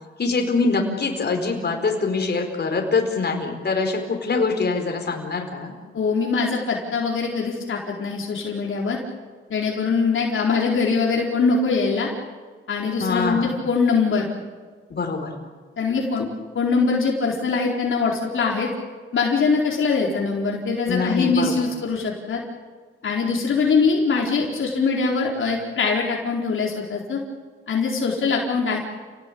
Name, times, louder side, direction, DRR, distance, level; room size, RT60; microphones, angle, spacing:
voice 1, 0.2-5.7 13.0-13.5 14.9-15.3 20.9-21.6, left 4 dB, 50° left, 3 dB, 4.9 m, -24 dB
voice 2, 5.9-9.0 9.5-12.1 12.7-14.3 15.8-16.3 16.5-18.7 19.1-22.4 23.0-27.2 27.7-28.8, left 4 dB, 70° left, -2 dB, 4.4 m, -22 dB
30.0 x 18.5 x 8.7 m, 1.5 s
cardioid pair, 90°, 21 cm